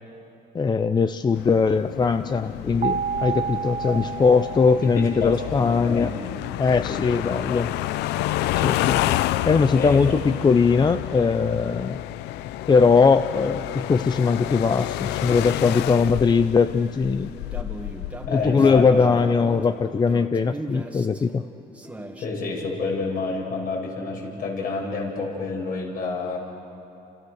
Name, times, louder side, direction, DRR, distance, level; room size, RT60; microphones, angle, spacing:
voice 1, 0.5-6.1 6.6-7.7 8.5-9.2 9.5-12.0 12.7-17.3 18.3-21.5, left 5 dB, 25° left, 10 dB, 0.7 m, -20 dB
sound 1, 1.3-19.5, left 15 dB, 90° left, 0.6 m, -30 dB
sound 2, 2.8-5.8, right 7 dB, 45° right, 1.2 m, -30 dB
voice 2, 4.9-6.1 6.9-7.7 9.8-10.2 18.3-19.3 22.2-26.4, left 3 dB, 60° left, -1 dB, 7.7 m, -29 dB
sound 3, 17.3-22.3, right 1 dB, 10° right, 2.0 m, -38 dB
30.0 x 28.5 x 6.6 m, 2.8 s
cardioid pair, 110°, 17 cm